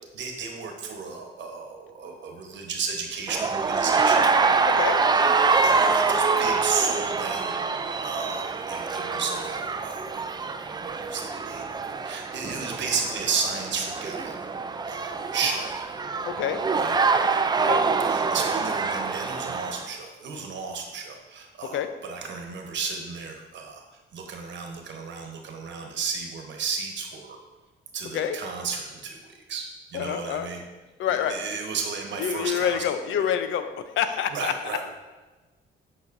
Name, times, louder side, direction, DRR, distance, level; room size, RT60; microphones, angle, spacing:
voice 1, 0.1-4.9 5.6-14.3 14.8-15.7 16.7-17.0 18.0-23.8 24.1-27.4 27.9-29.7 29.9-30.6 31.1-32.8 33.1-33.2 34.3-34.8, right 5 dB, 65° right, 3 dB, 1.1 m, -33 dB
sound 1, 3.3-19.9, right 4 dB, 20° right, 0.4 m, -25 dB
voice 2, 4.6-5.0 16.2-16.6 17.7-17.8 21.7-21.9 28.1-28.4 29.9-30.5 31.0-31.4 32.2-33.7 34.0-34.5, left 9 dB, 75° left, 10 dB, 0.6 m, -27 dB
8.3 x 5.7 x 2.6 m, 1.2 s
cardioid pair, 90°, 20 cm